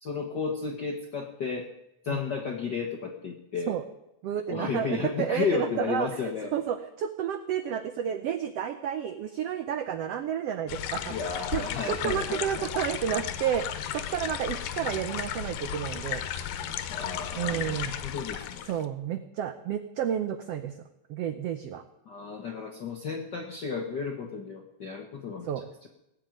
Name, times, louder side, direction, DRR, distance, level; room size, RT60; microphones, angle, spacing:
voice 1, 0.0-1.7 2.0-3.7 4.5-6.5 11.1-12.7 16.9-18.7 22.1-25.5 25.8-25.9, left 5 dB, 65° left, 3 dB, 1.0 m, -33 dB
voice 2, 4.2-11.2 11.5-16.2 17.4-17.9 18.7-20.8 21.1-21.8 25.4-25.7, right 9 dB, 85° right, 10 dB, 1.3 m, -31 dB
sound 1, 10.7-18.9, left 10 dB, 80° left, 2.5 m, -34 dB
18.0 x 7.7 x 9.2 m, 0.88 s
omnidirectional pair, 3.7 m